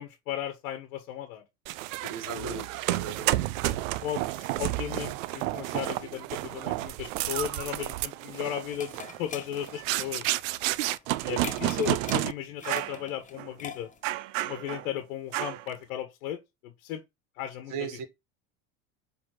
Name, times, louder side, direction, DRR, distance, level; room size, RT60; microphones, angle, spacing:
voice 1, 0.0-1.4 2.0-2.6 3.2-3.3 3.7-8.9 9.2-10.3 11.2-13.9 14.4-17.0 17.4-17.7, left 10 dB, 70° left, 1.3 m, -36 dB
sound 1, 1.7-12.3 12.6-13.0 13.4-13.5 14.0-14.9 15.3-15.7, right 17 dB, 70° right, 0.6 m, -31 dB
voice 2, 2.1-3.5 17.7-18.1, right 7 dB, 50° right, 1.9 m, -37 dB
sound 2, 7.9-14.2, left 6 dB, 20° left, 0.8 m, -44 dB
7.6 x 3.6 x 3.8 m
hypercardioid pair, 90°, 42 cm